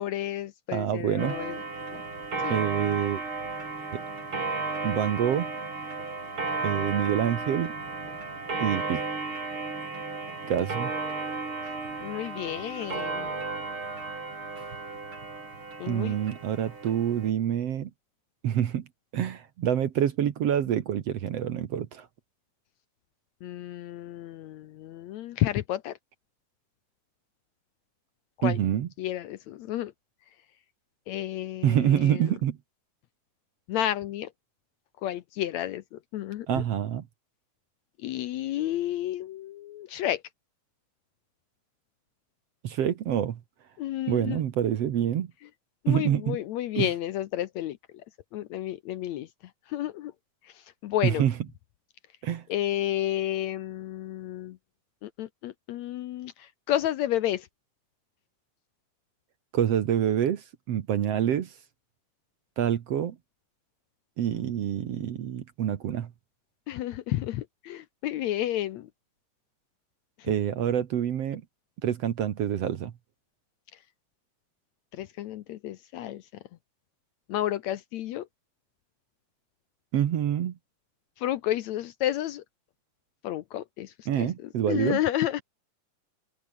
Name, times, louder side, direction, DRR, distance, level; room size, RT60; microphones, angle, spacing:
voice 1, 0.0-1.6 1.9-2.0 2.4-2.6 12.0-13.3 15.8-16.2 23.4-26.0 28.4-28.6 29.0-29.9 31.1-32.4 33.7-34.3 35.0-36.6 38.0-40.2 43.8-44.4 45.8-47.8 48.3-49.3 49.7-50.1 50.4-51.2 52.5-54.6 55.0-57.5 66.7-68.9 74.9-76.2 77.3-78.3 81.2-82.4 83.2-84.3 84.7-85.4, left 13 dB, 70° left, 1.9 m, -31 dB
voice 2, 0.7-1.4 2.5-3.2 4.8-5.5 6.6-7.7 8.6-9.0 10.5-10.9 15.9-17.9 18.4-18.9 19.1-22.1 28.4-28.9 31.6-32.6 36.5-37.0 42.6-43.4 44.1-45.3 45.9-46.4 46.8-46.9 51.0-51.3 52.2-52.4 59.5-61.5 62.6-63.2 64.2-66.1 70.2-71.4 71.8-72.9 79.9-80.5 84.1-85.0, right 10 dB, 60° right, 2.0 m, -26 dB
Clock, 1.2-17.3, right 3 dB, 40° right, 5.9 m, -34 dB
open air
omnidirectional pair, 3.8 m